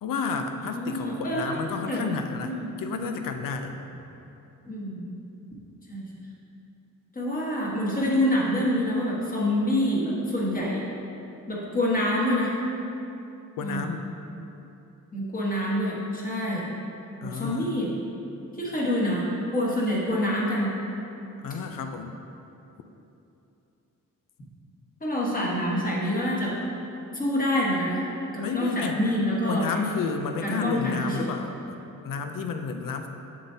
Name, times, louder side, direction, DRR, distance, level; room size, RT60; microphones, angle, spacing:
voice 1, 0.0-3.7 13.6-14.0 17.2-17.8 21.4-22.1 28.4-29.0 29.4-31.8 32.0-33.1, left 5 dB, 85° left, 6 dB, 0.6 m, -31 dB
voice 2, 0.5-1.6 1.9-2.0 2.4-2.7 4.6-5.2 5.9-6.0 7.1-10.8 11.5-12.5 13.6-13.9 15.1-16.7 17.2-17.9 18.6-20.7 25.0-26.5 27.1-28.0 28.3-29.8 30.4-31.3, left 1 dB, 25° left, -5 dB, 1.3 m, -26 dB
7.4 x 7.3 x 2.8 m, 2.8 s
wide cardioid pair, 155°, 32 cm